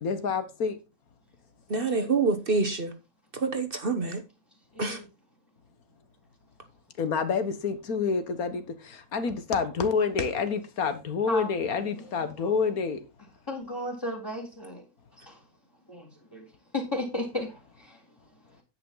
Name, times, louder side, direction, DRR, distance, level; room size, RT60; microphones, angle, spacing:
voice 1, 0.0-0.8 7.0-13.0, left 5 dB, 75° left, 1.8 m, -28 dB
voice 2, 1.7-2.9 3.3-4.2 4.8-5.0, right 4 dB, 40° right, 1.2 m, -26 dB
voice 3, 11.3-12.6 13.5-14.8 15.1-15.4 15.9-16.5 16.7-18.0, left 1 dB, 15° left, 2.3 m, -35 dB
10.0 x 8.6 x 3.9 m
omnidirectional pair, 1.5 m